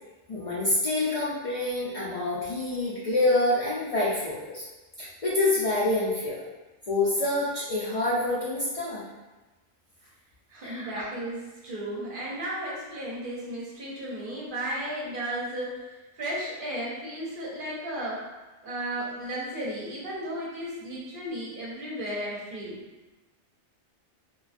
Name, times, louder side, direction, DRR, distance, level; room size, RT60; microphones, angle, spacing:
voice 1, 0.3-4.6 5.0-6.4 6.9-9.0 10.6-11.0, left 2 dB, 50° left, -8 dB, 0.4 m, -27 dB
voice 2, 10.5-18.3 18.6-22.8, right 1 dB, 55° right, -5 dB, 0.8 m, -34 dB
2.3 x 2.2 x 2.4 m, 1.1 s
omnidirectional pair, 1.2 m